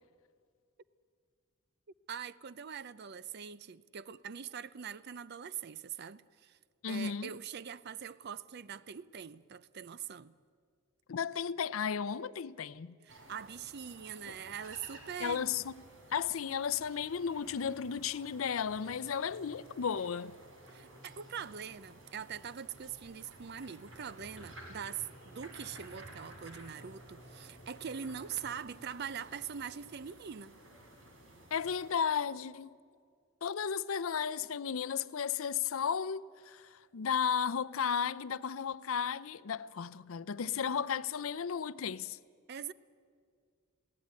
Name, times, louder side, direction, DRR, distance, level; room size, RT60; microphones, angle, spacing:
voice 1, 2.1-6.6 6.9-10.3 13.0-15.5 20.7-30.5 42.5-42.7, right 7 dB, 50° right, 0.5 m, -43 dB
voice 2, 6.8-7.3 11.1-12.9 15.2-15.8 16.1-20.3 31.5-32.7 33.4-42.2, left 7 dB, 75° left, 0.5 m, -34 dB
sound 1, 13.1-31.9, right 1 dB, 70° right, 3.8 m, -54 dB
20.5 x 17.0 x 9.6 m
head